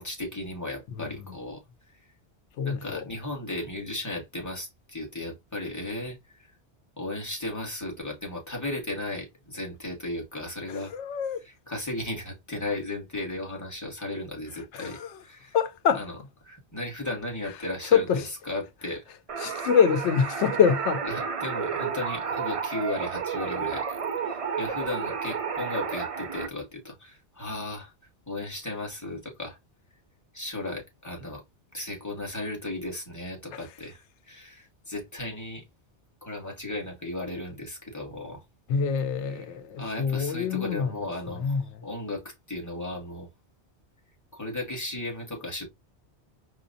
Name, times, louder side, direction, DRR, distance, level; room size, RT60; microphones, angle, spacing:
voice 1, 0.0-1.6 2.6-6.4 7.0-10.9 11.4-15.6 15.9-16.1 16.4-19.0 21.1-24.0 24.2-27.9 28.3-29.6 30.3-31.4 31.7-35.6 36.2-38.4 39.3-39.5 39.8-43.3 44.3-45.7, left 2 dB, 15° left, 1.3 m, -35 dB
voice 2, 2.6-3.1 10.7-11.4 14.7-15.2 15.5-16.0 17.9-18.3 19.4-21.0 33.5-33.6 38.7-40.9 41.4-41.6, left 7 dB, 90° left, 0.9 m, -25 dB
sound 1, 19.3-26.5, right 6 dB, 45° right, 0.5 m, -31 dB
5.0 x 2.2 x 2.5 m
omnidirectional pair, 1.1 m